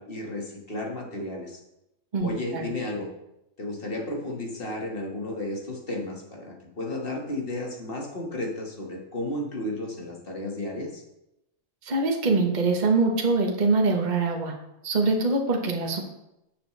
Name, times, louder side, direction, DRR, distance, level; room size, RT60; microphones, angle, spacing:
voice 1, 0.0-1.6 2.2-3.1 3.6-11.0, left 1 dB, 40° left, -1 dB, 2.0 m, -33 dB
voice 2, 2.1-2.6 11.8-14.5 14.8-16.0, right 3 dB, 35° right, 2 dB, 1.2 m, -24 dB
11.5 x 7.1 x 3.3 m, 0.88 s
omnidirectional pair, 1.4 m